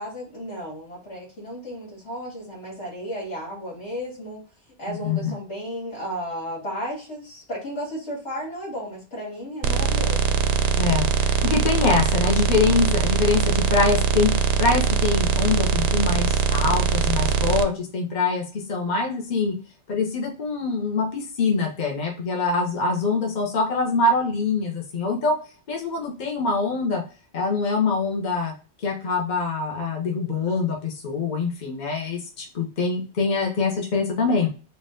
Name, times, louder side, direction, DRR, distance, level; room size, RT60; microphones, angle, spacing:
voice 1, 0.0-4.4 4.8-10.4, equal, 70° left, -6 dB, 2.3 m, -34 dB
voice 2, 4.9-5.3 10.8-14.3 14.6-19.5 19.9-25.4 25.7-27.0 27.3-28.5 28.8-34.5, left 4 dB, 45° left, 0 dB, 1.0 m, -24 dB
sound 1, 9.6-17.6, right 6 dB, 85° right, 0.9 m, -22 dB
4.4 x 2.5 x 3.6 m, 0.35 s
omnidirectional pair, 1.2 m